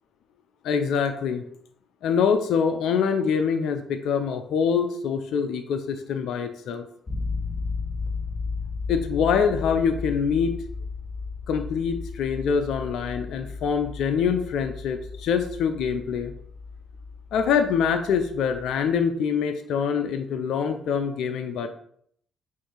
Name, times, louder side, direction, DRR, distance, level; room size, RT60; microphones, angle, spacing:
voice 1, 0.6-1.4 2.0-6.9 8.9-10.5 11.5-16.3 17.3-21.7, left 6 dB, 75° left, 7 dB, 0.6 m, -25 dB
sound 1, 7.1-19.0, left 4 dB, 30° left, 1.9 m, -34 dB
8.2 x 2.7 x 4.5 m, 0.66 s
supercardioid pair, 70°, 0 cm